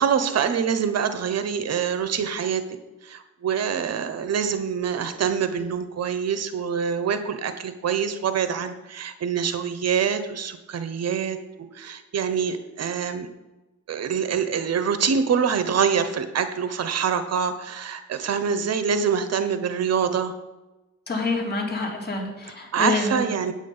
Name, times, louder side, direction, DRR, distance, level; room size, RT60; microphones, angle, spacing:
voice 1, 0.0-2.6 3.0-11.4 11.7-13.3 13.9-20.3 22.7-23.5, right 7 dB, 55° right, 10 dB, 1.1 m, -25 dB
voice 2, 21.1-23.3, left 2 dB, 35° left, 0 dB, 3.2 m, -27 dB
8.9 x 8.7 x 5.6 m, 1.0 s
cardioid pair, 90°, 30 cm